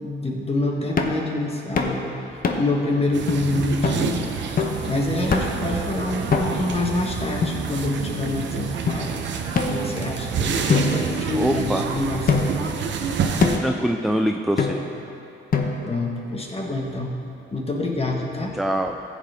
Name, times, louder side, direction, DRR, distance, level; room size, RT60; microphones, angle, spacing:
voice 1, 0.0-4.3 4.9-9.2 9.7-12.3 15.8-17.1 17.5-18.6, left 2 dB, 30° left, 0 dB, 1.6 m, -26 dB
sound 1, 1.0-1.2 1.8-2.0 2.4-2.8 3.3-3.4 3.8-4.0 4.6-4.8 5.3-5.7 6.3-6.8 7.4-8.1 8.9-9.0 9.5-10.2 10.7-11.7 12.3-12.7 13.4-13.8 14.6-15.0 15.5-16.0, left 4 dB, 45° left, 1.0 m, -24 dB
sound 2, 3.1-13.6, right 6 dB, 65° right, 0.9 m, -28 dB
voice 2, 11.3-11.9 13.6-14.8 18.5-19.0, equal, ahead, 3 dB, 0.4 m, -24 dB
14.5 x 8.2 x 3.5 m, 2.8 s
cardioid pair, 90°, 20 cm